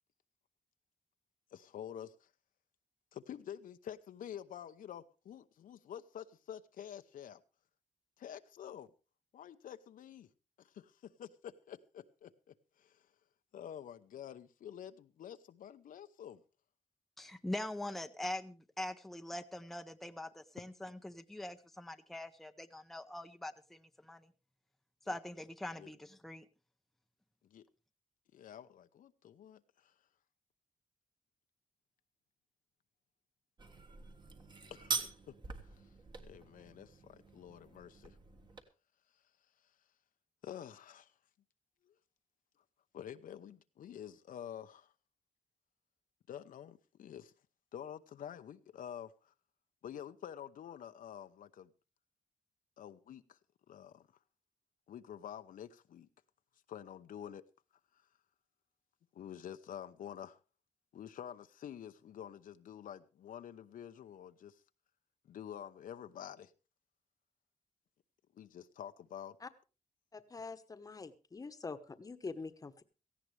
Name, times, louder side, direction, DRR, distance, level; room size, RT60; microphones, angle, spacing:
voice 1, 1.5-2.3 3.1-7.4 8.2-8.9 9.3-10.3 10.6-13.1 13.5-16.4 25.1-25.2 25.8-25.9 27.4-27.6 28.3-29.9 34.7-35.8 36.3-38.2 40.4-41.1 41.8-41.9 42.9-44.9 46.3-47.3 47.7-49.3 49.8-51.7 52.8-53.4 53.7-54.1 54.9-56.1 56.7-57.4 59.1-60.4 60.9-64.6 65.2-66.5 68.3-69.4, left 9 dB, 85° left, 0.8 m, -48 dB
voice 2, 17.2-24.3 25.1-26.5, left 1 dB, ahead, 0.6 m, -43 dB
sound 1, 33.6-38.6, right 4 dB, 35° right, 1.5 m, -44 dB
voice 3, 70.1-72.8, left 4 dB, 25° left, 1.1 m, -45 dB
17.5 x 15.0 x 3.3 m
wide cardioid pair, 155°, 14 cm